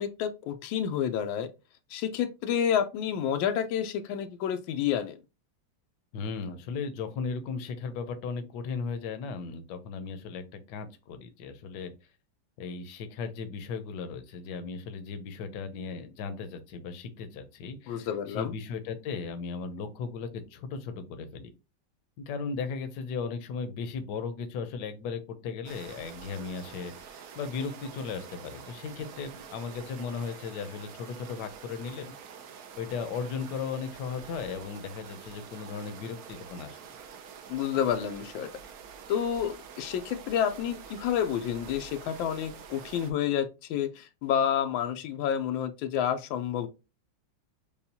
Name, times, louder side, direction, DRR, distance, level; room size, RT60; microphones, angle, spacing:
voice 1, 0.0-1.5 1.9-5.2 17.9-18.5 37.5-38.5 39.1-46.7, left 9 dB, 90° left, 1.3 m, -29 dB
voice 2, 6.1-11.9 12.6-21.5 22.2-32.1 32.8-37.0, left 5 dB, 70° left, 1.2 m, -36 dB
sound 1, 25.6-43.1, right 7 dB, 65° right, 1.0 m, -47 dB
6.8 x 2.3 x 2.7 m
omnidirectional pair, 2.1 m